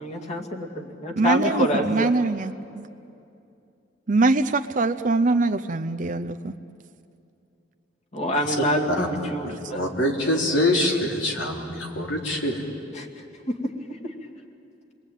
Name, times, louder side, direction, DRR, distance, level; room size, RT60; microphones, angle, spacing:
voice 1, 0.0-2.1 8.1-10.0 12.9-13.1 13.5-13.6 14.0-14.1, equal, 40° left, 0 dB, 2.4 m, -27 dB
voice 2, 1.2-2.9 4.1-6.5, right 3 dB, 45° right, 10 dB, 0.6 m, -23 dB
voice 3, 9.7-12.6, left 1 dB, 85° left, 0 dB, 3.7 m, -24 dB
28.5 x 21.5 x 9.2 m, 2.6 s
head